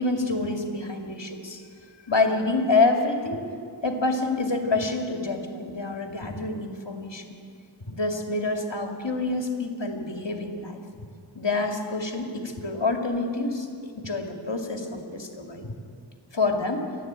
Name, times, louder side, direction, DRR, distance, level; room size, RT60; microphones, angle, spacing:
voice 1, 0.0-1.6 2.1-3.4 3.8-7.3 7.9-10.8 11.3-15.7 16.3-16.9, left 3 dB, 70° left, 3 dB, 2.5 m, -27 dB
28.5 x 12.0 x 8.9 m, 2.3 s
wide cardioid pair, 40°, 45 cm